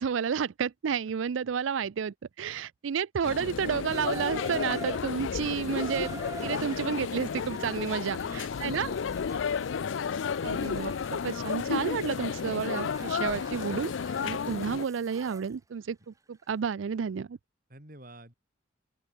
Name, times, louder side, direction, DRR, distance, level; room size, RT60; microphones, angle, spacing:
voice 1, 0.0-8.9 10.4-13.9 14.2-17.4, right 6 dB, 85° right, 0.4 m, -31 dB
sound 1, 3.2-14.9, left 6 dB, 80° left, 0.4 m, -32 dB
Water tap faucet / Bathtub (filling or washing), 3.9-15.5 16.4-16.5, right 3 dB, 15° right, 1.3 m, -47 dB
voice 2, 8.2-9.7 17.7-18.3, right 1 dB, 45° right, 6.9 m, -51 dB
open air
head